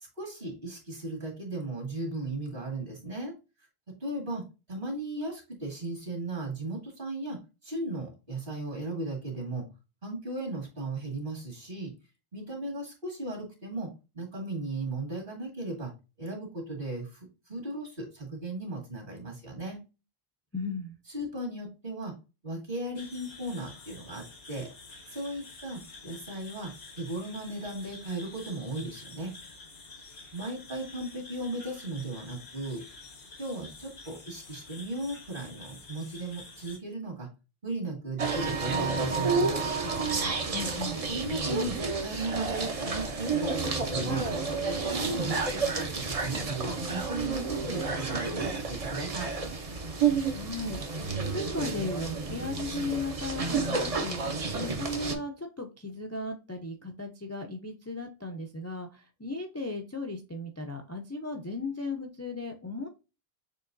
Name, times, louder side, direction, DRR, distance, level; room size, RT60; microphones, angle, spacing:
voice 1, 0.2-3.4 3.9-9.7 10.0-11.9 12.3-15.9 16.2-19.8 21.1-22.2 22.4-24.7 25.1-29.3 30.3-32.9 33.4-37.3 37.6-39.7 41.1-44.3 44.6-49.3, right 2 dB, 55° right, 0 dB, 2.0 m, -36 dB
voice 2, 20.5-21.0 40.5-41.0 50.3-62.9, left 2 dB, 20° left, 3 dB, 0.5 m, -36 dB
sound 1, 23.0-36.8, left 3 dB, 80° left, 1.3 m, -49 dB
sound 2, 38.2-55.1, right 4 dB, 40° right, 0.7 m, -30 dB
6.7 x 3.0 x 2.5 m, 0.29 s
omnidirectional pair, 1.0 m